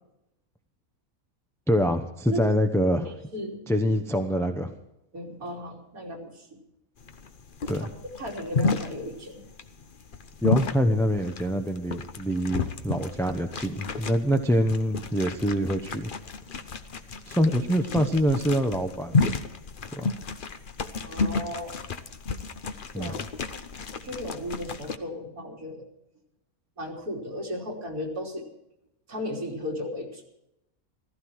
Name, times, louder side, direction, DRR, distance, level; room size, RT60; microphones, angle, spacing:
voice 1, 1.7-3.1 3.7-4.7 7.7-7.9 10.4-16.1 17.3-19.2 19.9-20.1 22.9-23.2, equal, ahead, 6 dB, 0.7 m, -25 dB
voice 2, 3.1-3.6 5.1-6.5 8.2-9.4 21.0-21.8 22.9-23.2 23.7-25.8 26.8-28.4 29.1-30.2, left 1 dB, 80° right, -2 dB, 3.8 m, -35 dB
sound 1, 7.0-25.0, left 4 dB, 40° left, 0.9 m, -32 dB
15.0 x 15.0 x 4.7 m, 0.83 s
omnidirectional pair, 1.5 m